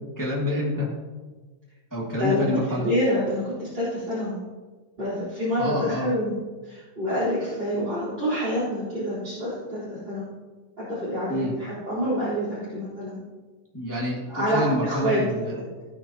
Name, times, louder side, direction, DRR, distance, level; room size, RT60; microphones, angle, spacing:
voice 1, 0.2-0.9 1.9-2.8 5.6-6.1 11.3-11.5 13.7-15.6, left 1 dB, 25° left, -5 dB, 0.3 m, -27 dB
voice 2, 2.8-4.4 5.0-6.3 6.6-10.3 10.8-13.2 14.3-15.2, equal, 15° right, -12 dB, 4.0 m, -27 dB
17.0 x 8.9 x 2.9 m, 1.3 s
omnidirectional pair, 4.7 m